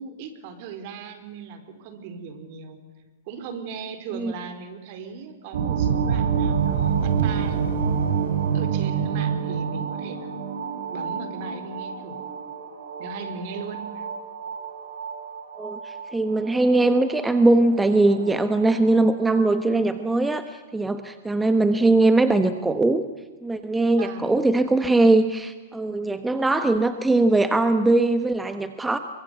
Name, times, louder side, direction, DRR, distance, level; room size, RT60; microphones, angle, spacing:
voice 1, 0.0-2.8 3.3-7.6 8.5-12.2 13.0-14.1 24.0-24.4, right 4 dB, 50° right, 9 dB, 4.3 m, -38 dB
sound 1, 5.5-19.0, right 7 dB, 80° right, 4.3 m, -27 dB
voice 2, 15.6-23.1 23.4-29.0, right 2 dB, 10° right, 9 dB, 1.2 m, -21 dB
28.0 x 24.0 x 8.2 m, 1.2 s
hypercardioid pair, 140°, 0 cm